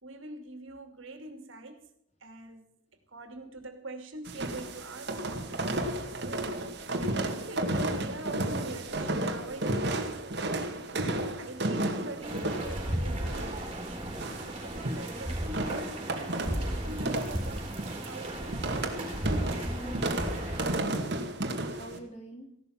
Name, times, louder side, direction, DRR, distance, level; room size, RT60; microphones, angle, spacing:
voice 1, 0.0-1.9 2.2-2.7 3.1-14.2 14.4-16.3 16.6-18.7, right 2 dB, 70° right, 2.7 m, -44 dB
sound 1, 4.3-22.0, right 1 dB, 50° right, 2.2 m, -33 dB
sound 2, 12.2-20.8, right 1 dB, 25° right, 4.0 m, -35 dB
voice 2, 19.4-22.6, right 1 dB, 30° left, 3.1 m, -47 dB
16.5 x 12.5 x 5.9 m
head